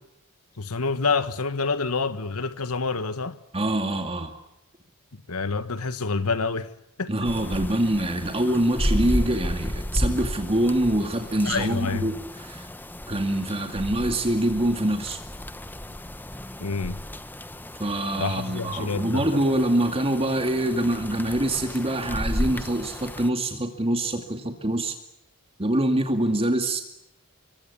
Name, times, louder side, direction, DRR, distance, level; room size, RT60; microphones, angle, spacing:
voice 1, 0.6-3.4 5.3-6.7 7.0-7.1 11.4-12.1 16.6-17.0 18.2-19.3, left 4 dB, 80° left, 1.6 m, -27 dB
voice 2, 3.5-4.3 7.1-12.7 13.1-15.2 17.8-25.0 25.6-26.8, right 1 dB, 25° right, 2.3 m, -25 dB
sound 1, 7.2-23.3, equal, 10° left, 1.0 m, -33 dB
27.0 x 23.5 x 8.5 m
head